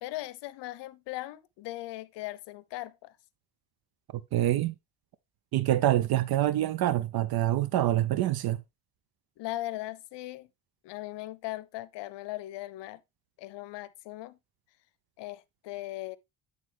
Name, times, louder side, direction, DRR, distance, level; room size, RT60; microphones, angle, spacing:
voice 1, 0.0-3.2 9.4-10.5 10.8-13.0 13.4-14.4 15.2-16.2, left 17 dB, 65° left, 0.7 m, -39 dB
voice 2, 4.1-4.8 5.5-8.6, right 13 dB, 55° right, 0.6 m, -26 dB
9.4 x 4.0 x 3.3 m
supercardioid pair, 75°, 45 cm